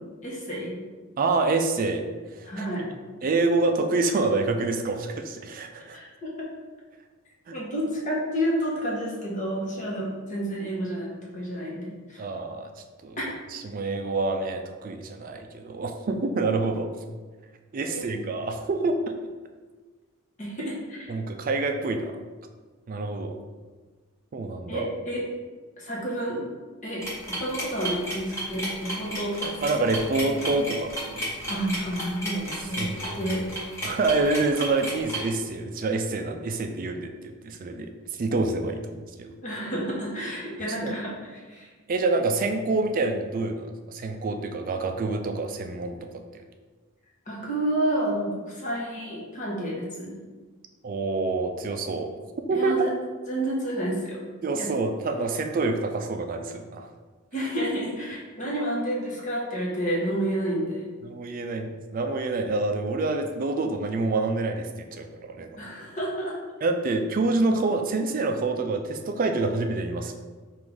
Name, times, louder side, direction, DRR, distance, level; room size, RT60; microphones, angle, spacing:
voice 1, 0.2-0.8 2.4-2.8 5.9-6.5 7.5-12.2 13.2-13.3 17.9-18.2 20.4-21.2 24.7-25.2 25.8-26.4 26.8-29.6 31.5-33.5 39.4-41.7 47.3-50.1 52.5-52.9 53.3-54.2 54.6-54.7 57.3-60.9 65.6-66.3, right 1 dB, 35° left, -5 dB, 1.1 m, -30 dB
voice 2, 1.2-2.0 2.4-2.6 3.2-6.0 7.5-7.6 12.2-12.7 13.0-13.2 13.5-16.9 17.7-19.0 21.1-22.2 22.9-23.3 24.3-24.9 29.6-31.4 32.8-33.0 33.3-33.4 33.8-37.9 38.2-39.3 40.8-40.9 41.9-46.0 46.3-46.4 50.8-52.1 52.5-52.9 54.4-56.9 61.0-65.6 66.6-70.1, right 3 dB, 40° right, 5 dB, 0.3 m, -27 dB
sound 1, 27.0-35.2, right 1 dB, 15° left, 1.0 m, -32 dB
sound 2, 29.0-32.3, left 3 dB, 65° left, 1.2 m, -48 dB
3.7 x 2.5 x 4.7 m, 1.4 s
head